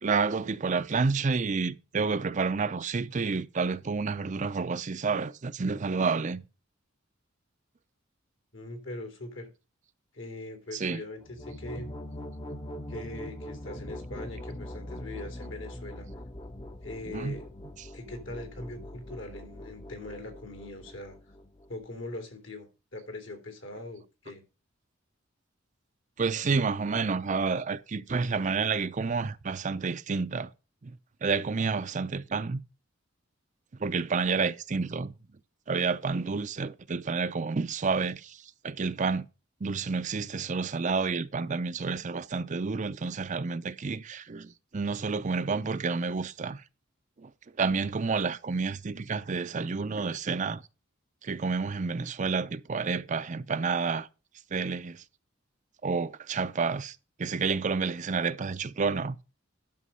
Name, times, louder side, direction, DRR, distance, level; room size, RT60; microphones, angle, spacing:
voice 1, 0.0-6.4 10.7-11.0 17.1-17.4 17.8-17.9 26.2-30.5 30.8-30.9 31.2-32.6 33.8-35.1 35.7-39.3 39.6-46.6 47.2-47.3 47.6-50.6 51.2-54.1 54.5-55.0 55.8-59.2, right 4 dB, 35° right, 0.5 m, -29 dB
voice 2, 8.5-9.5 10.1-11.9 12.9-16.1 16.8-17.5 17.9-21.2 21.7-24.4, left 2 dB, 65° left, 2.6 m, -41 dB
sound 1, 11.2-21.9, left 1 dB, 25° left, 0.7 m, -42 dB
11.0 x 6.3 x 5.4 m
head